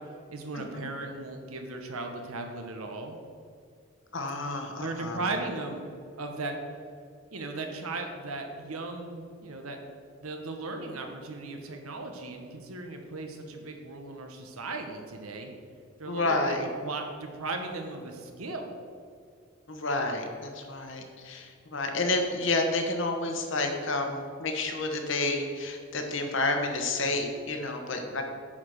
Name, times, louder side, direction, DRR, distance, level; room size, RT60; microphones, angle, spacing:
voice 1, 0.3-3.2 4.8-5.9 6.2-6.5 7.3-9.8 10.2-15.5 16.0-18.8, right 2 dB, 90° right, 4 dB, 1.3 m, -37 dB
voice 2, 4.1-5.2 16.1-16.7 19.7-28.2, left 2 dB, 60° left, 4 dB, 1.2 m, -30 dB
9.4 x 5.0 x 6.5 m, 2.2 s
head